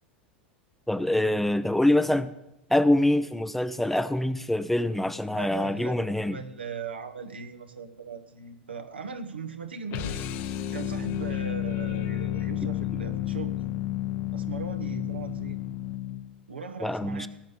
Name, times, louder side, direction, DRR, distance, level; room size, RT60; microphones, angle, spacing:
voice 1, 0.9-2.3 2.7-6.4 16.8-17.3, left 1 dB, 5° left, 0.7 m, -25 dB
voice 2, 5.4-10.3 10.7-13.6 14.3-15.6 16.5-17.3, right 5 dB, 75° right, 1.3 m, -39 dB
sound 1, 9.9-16.3, left 13 dB, 45° left, 0.9 m, -31 dB
17.5 x 6.6 x 8.9 m
figure-of-eight pair, 80°, 6 cm